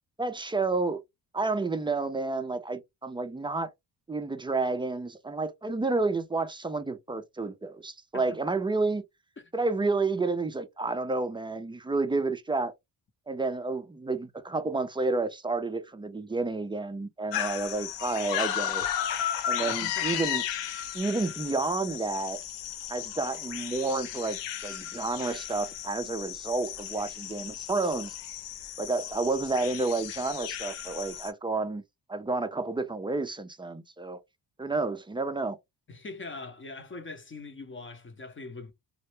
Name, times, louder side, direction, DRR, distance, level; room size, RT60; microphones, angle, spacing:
voice 1, 0.2-1.0 1.3-3.7 4.1-9.0 9.5-12.7 13.3-18.9 19.5-20.4 20.9-22.4 22.9-24.4 24.6-28.1 28.8-31.8 32.1-34.2 34.6-35.6, right 3 dB, 15° right, 0.3 m, -30 dB
sound 1, 17.3-31.3, left 10 dB, 85° left, 0.5 m, -34 dB
voice 2, 19.6-20.2 35.9-38.7, left 3 dB, 30° left, 0.6 m, -42 dB
2.1 x 2.0 x 3.0 m
supercardioid pair, 60°, 42 cm